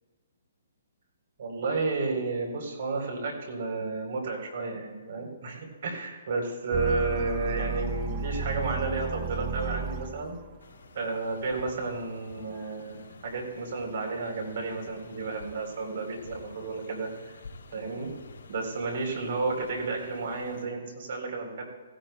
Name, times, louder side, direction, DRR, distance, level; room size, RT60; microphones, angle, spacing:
voice 1, 1.4-10.4 10.9-17.3 17.7-18.1 18.5-21.6, right 3 dB, 55° right, 2 dB, 3.8 m, -32 dB
sound 1, 6.7-10.5, right 4 dB, 35° right, 0.7 m, -33 dB
sound 2, 10.6-20.6, left 3 dB, 65° left, 3.3 m, -50 dB
16.5 x 16.5 x 2.3 m, 1.4 s
hypercardioid pair, 150°, 0 cm